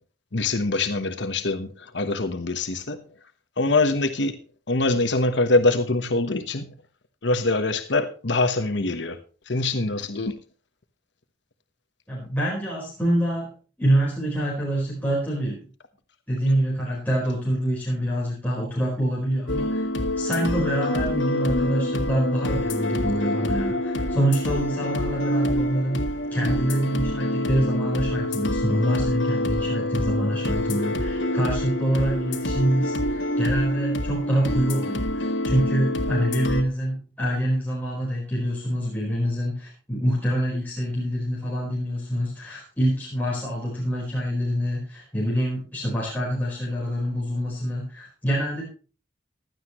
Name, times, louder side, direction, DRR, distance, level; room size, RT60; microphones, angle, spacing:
voice 1, 0.3-3.0 3.6-4.4 4.7-6.7 7.2-9.2 9.5-10.3, left 2 dB, 75° left, 1.2 m, -24 dB
voice 2, 12.1-13.5 13.8-15.6 16.3-19.9 20.2-48.6, right 1 dB, 10° left, 4.4 m, -26 dB
sound 1, 19.5-36.6, left 1 dB, 90° left, 1.8 m, -26 dB
16.0 x 12.0 x 3.1 m
head